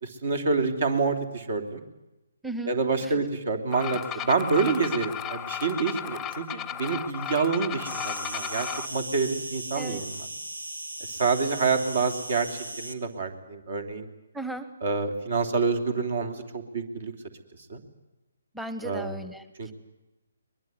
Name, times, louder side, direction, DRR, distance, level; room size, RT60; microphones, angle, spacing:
voice 1, 0.0-1.8 2.6-10.3 11.0-14.1 14.8-17.1 17.7-17.8 18.8-19.2 19.6-19.7, right 4 dB, 55° right, 8 dB, 3.2 m, -27 dB
voice 2, 2.4-2.8 3.0-3.2 9.7-10.0 14.3-14.7 18.5-19.7, right 2 dB, 5° right, 10 dB, 1.2 m, -36 dB
sound 1, 3.7-8.9, left 9 dB, 10° left, 0.8 m, -34 dB
Insect, 7.8-12.9, right 1 dB, 85° right, 2.4 m, -37 dB
22.5 x 21.0 x 9.6 m, 0.96 s
figure-of-eight pair, 140°, 0 cm